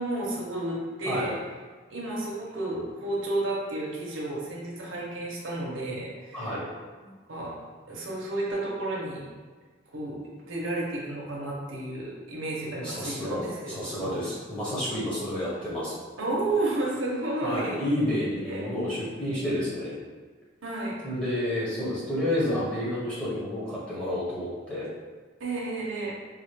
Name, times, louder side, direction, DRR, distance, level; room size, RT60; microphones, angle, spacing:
voice 1, 0.0-1.3 1.9-6.5 7.0-7.6 7.9-9.2 9.9-14.2 16.2-17.8 18.5-18.6 20.6-21.0 25.4-26.1, right 2 dB, 85° right, -3 dB, 0.8 m, -32 dB
voice 2, 6.3-6.7 12.8-15.9 17.4-20.0 21.0-24.9, left 1 dB, 5° left, -9 dB, 1.0 m, -30 dB
3.7 x 2.4 x 3.2 m, 1.4 s
head